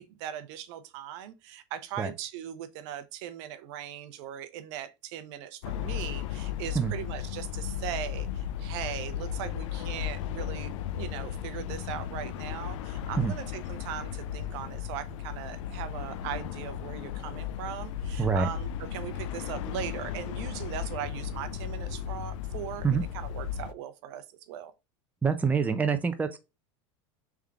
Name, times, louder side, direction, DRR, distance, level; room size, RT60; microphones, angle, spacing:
voice 1, 0.0-24.7, right 10 dB, 65° right, 0.7 m, -39 dB
sound 1, 5.6-23.7, left 10 dB, 75° left, 0.5 m, -35 dB
voice 2, 18.2-18.5 22.8-23.0 25.2-26.4, right 5 dB, 10° right, 0.5 m, -26 dB
3.6 x 3.5 x 3.4 m
supercardioid pair, 115°, 16 cm